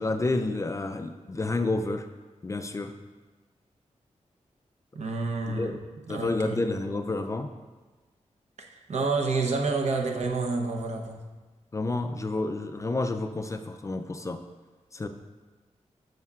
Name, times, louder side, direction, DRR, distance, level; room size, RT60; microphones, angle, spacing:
voice 1, 0.0-2.1 2.4-2.9 5.5-5.8 6.1-7.5 11.7-14.4 14.9-15.1, left 2 dB, 25° left, 7 dB, 0.3 m, -30 dB
voice 2, 4.9-5.7 6.1-6.6 8.6-11.2, right 3 dB, 65° right, 3 dB, 0.8 m, -29 dB
13.0 x 5.3 x 2.4 m, 1.3 s
wide cardioid pair, 160°, 12 cm